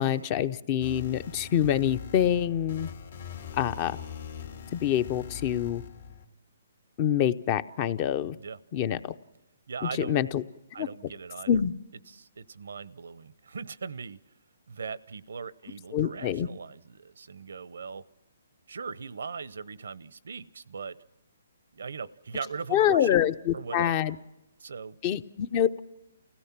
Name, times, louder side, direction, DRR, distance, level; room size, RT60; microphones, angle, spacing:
voice 1, 0.0-2.9 3.6-4.0 4.7-5.8 7.0-8.4 8.7-9.1 10.0-10.4 10.8-10.9 11.5-11.7 15.9-16.5 22.7-24.2 25.0-25.8, left 10 dB, 30° left, 15 dB, 0.6 m, -26 dB
sound 1, 0.8-6.3, left 7 dB, 70° left, 3.0 m, -42 dB
voice 2, 9.7-10.2 10.7-11.6 12.1-14.2 14.7-18.0 18.7-21.0 21.7-23.2 23.5-24.1 24.6-25.0, right 5 dB, 80° right, 18 dB, 0.7 m, -39 dB
29.5 x 16.5 x 6.0 m, 0.96 s
hypercardioid pair, 150°, 0 cm